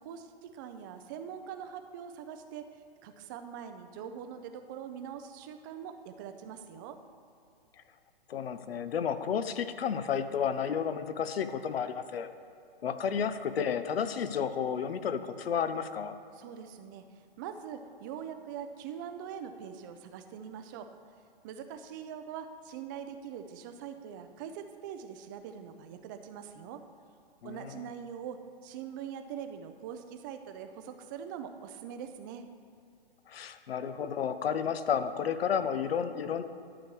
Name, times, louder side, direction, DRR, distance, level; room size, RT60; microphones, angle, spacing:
voice 1, 0.0-7.0 16.3-17.0 17.4-20.9 21.4-26.8 27.4-32.5, right 8 dB, 20° right, 8 dB, 0.4 m, -43 dB
voice 2, 8.3-12.3 12.8-16.2 27.4-27.8 33.3-36.4, left 7 dB, 80° left, 11 dB, 0.7 m, -32 dB
11.0 x 6.9 x 4.6 m, 2.4 s
hypercardioid pair, 145°, 30 cm